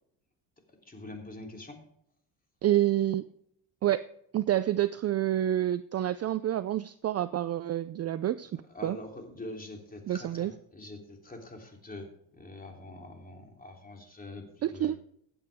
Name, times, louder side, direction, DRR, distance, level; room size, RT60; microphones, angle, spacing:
voice 1, 0.7-1.8 8.7-12.1 12.3-15.0, left 1 dB, 20° left, 2 dB, 3.4 m, -44 dB
voice 2, 2.6-3.2 3.8-4.0 4.3-9.0 10.1-10.5 14.6-15.0, right 12 dB, 35° right, 15 dB, 0.4 m, -28 dB
16.0 x 8.8 x 3.6 m, 0.72 s
supercardioid pair, 95°, 46 cm